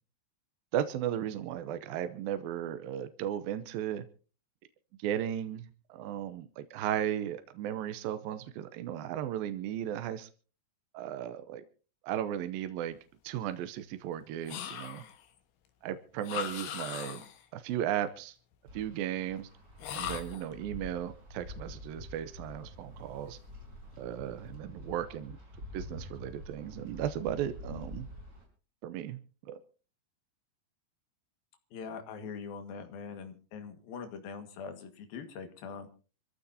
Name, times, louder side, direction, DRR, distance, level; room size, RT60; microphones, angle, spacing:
voice 1, 0.7-4.1 5.0-10.3 10.9-11.6 12.0-13.0 13.2-15.0 15.8-17.2 17.5-18.4 18.7-19.5 19.9-23.4 24.0-25.4 25.7-28.1 28.8-29.2 29.5-29.6, right 10 dB, 75° right, 11 dB, 2.5 m, -35 dB
sound 1, 14.5-15.3 16.2-17.5 19.8-20.5, left 9 dB, 90° left, 3.4 m, -39 dB
Wind, 18.7-28.4, left 1 dB, 25° right, 5.6 m, -47 dB
voice 2, 31.7-35.9, left 5 dB, 70° left, 7 dB, 3.6 m, -42 dB
26.0 x 15.0 x 2.8 m, 0.36 s
omnidirectional pair, 4.5 m